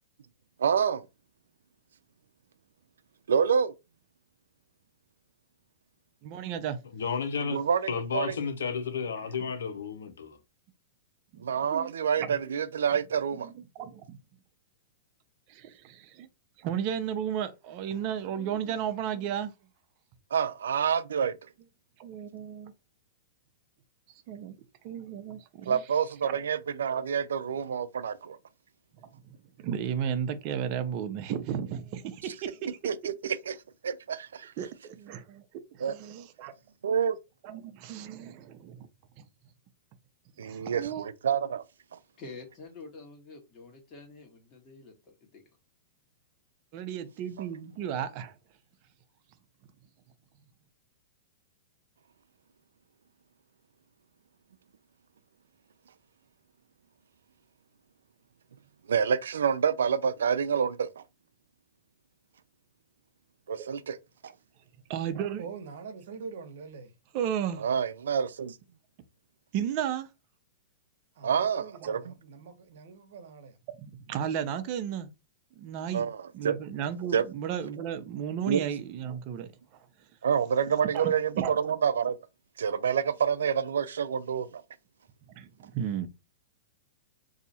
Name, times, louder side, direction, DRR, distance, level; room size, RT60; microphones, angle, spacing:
voice 1, 0.6-1.1 3.3-3.7 7.5-8.4 11.4-13.5 20.3-21.4 25.7-28.4 32.2-32.3 32.8-33.6 33.8-34.5 35.8-35.9 36.8-37.2 40.4-41.6 41.9-42.0 58.9-61.0 63.5-64.0 64.2-64.3 67.6-68.6 71.2-72.1 75.9-76.6 77.1-77.2 78.5-78.6 80.2-82.2 82.6-84.6, right 7 dB, 90° right, 0.4 m, -28 dB
voice 2, 6.2-6.8 11.3-11.4 11.7-11.9 13.4-13.5 13.8-14.2 15.5-16.3 16.6-19.5 22.0-22.7 24.3-24.6 24.8-25.8 26.2-26.4 29.1-32.8 34.6-35.4 35.7-36.5 37.4-38.9 40.4-41.1 46.7-48.3 63.6-63.7 64.9-65.4 67.1-67.6 69.5-70.1 71.8-71.9 73.8-75.1 75.6-76.1 76.3-79.5 80.9-81.5 85.4-86.1, right 9 dB, 45° right, 0.6 m, -34 dB
voice 3, 6.9-7.6 7.9-10.4, left 6 dB, 85° left, 0.8 m, -32 dB
voice 4, 42.2-45.4, left 3 dB, 30° left, 1.4 m, -47 dB
voice 5, 65.4-66.9 71.1-73.6, right 5 dB, 70° right, 0.9 m, -44 dB
2.7 x 2.4 x 4.1 m
hypercardioid pair, 135°, 0 cm